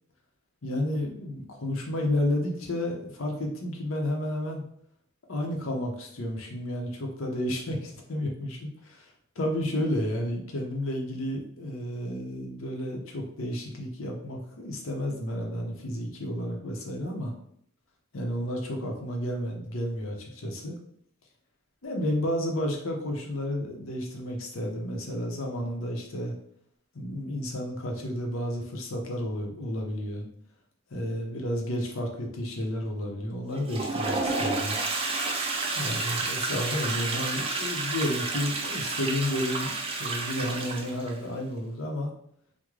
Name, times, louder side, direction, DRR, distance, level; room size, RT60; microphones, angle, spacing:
voice 1, 0.6-4.6 5.3-9.1 9.4-17.3 18.1-20.8 21.8-26.3 26.9-30.3 30.9-34.8 35.7-39.7 40.0-42.1, left 1 dB, 75° left, 1 dB, 0.7 m, -31 dB
Toilet flush, 33.5-41.2, right 3 dB, 25° right, 0.4 m, -30 dB
3.6 x 2.1 x 3.1 m, 0.66 s
head